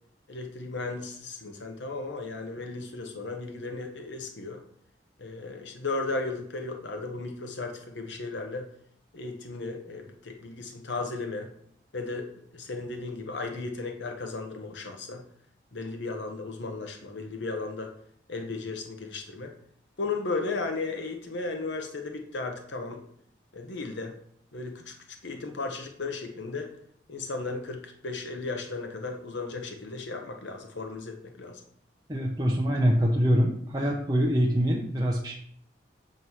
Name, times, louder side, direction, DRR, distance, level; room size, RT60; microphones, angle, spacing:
voice 1, 0.3-4.6 5.2-8.7 9.1-11.5 11.9-12.3 12.5-15.2 15.7-17.9 18.3-19.5 20.0-23.0 23.5-24.1 24.5-24.9 25.2-26.7 27.1-31.6, left 3 dB, 80° left, 4 dB, 0.9 m, -35 dB
voice 2, 32.1-35.3, equal, 20° right, -1 dB, 0.6 m, -24 dB
7.6 x 3.1 x 5.5 m, 0.63 s
head